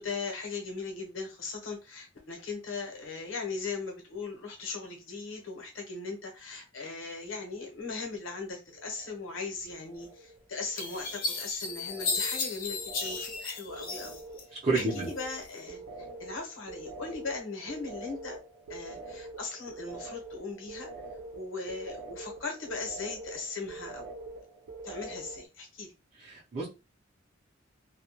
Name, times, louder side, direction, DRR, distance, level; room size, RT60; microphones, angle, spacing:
voice 1, 0.0-14.2 14.7-18.4 18.7-20.9 21.3-24.1 24.8-25.9, left 4 dB, 75° left, 2 dB, 0.9 m, -39 dB
sound 1, 7.9-8.4 8.7-9.4 9.7-25.5, right 2 dB, 85° right, 0.7 m, -45 dB
sound 2, 10.0-10.1 10.8-14.4 14.8-15.5, left 3 dB, 45° left, 0.6 m, -34 dB
voice 2, 14.6-15.1 26.2-26.7, right 3 dB, 40° right, -6 dB, 0.6 m, -29 dB
2.2 x 2.2 x 2.8 m, 0.28 s
head